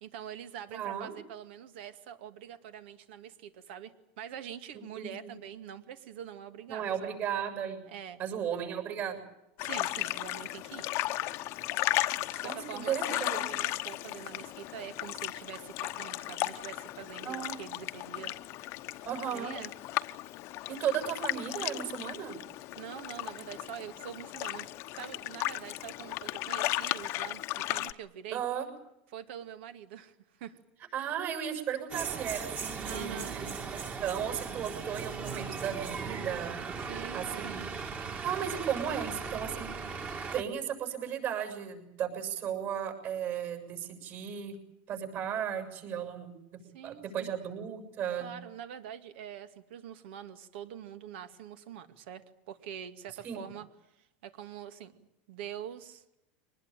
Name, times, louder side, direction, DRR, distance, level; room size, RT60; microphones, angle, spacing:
voice 1, 0.0-7.2 7.9-8.2 9.6-10.9 12.2-18.3 18.7-18.9 19.3-19.7 22.8-24.7 24.9-28.4 29.1-30.6 32.8-33.4 36.8-37.6 38.4-38.5 46.7-47.3 48.2-53.6 54.0-56.0, right 9 dB, 70° right, 10 dB, 2.4 m, -45 dB
voice 2, 0.7-1.1 5.0-5.3 6.7-7.8 8.2-9.2 12.4-13.5 17.2-17.6 19.1-19.5 20.7-22.4 28.3-28.7 30.9-33.5 34.0-36.6 37.1-37.6 38.2-39.7 40.3-44.6 44.9-46.3 46.8-48.3 53.2-53.4, right 9 dB, 40° right, 6 dB, 7.1 m, -35 dB
sound 1, 9.6-27.9, left 17 dB, 45° left, 1.0 m, -35 dB
sound 2, 31.9-40.4, right 5 dB, 25° right, 2.5 m, -38 dB
24.5 x 20.0 x 9.2 m, 0.86 s
supercardioid pair, 145°, 6 cm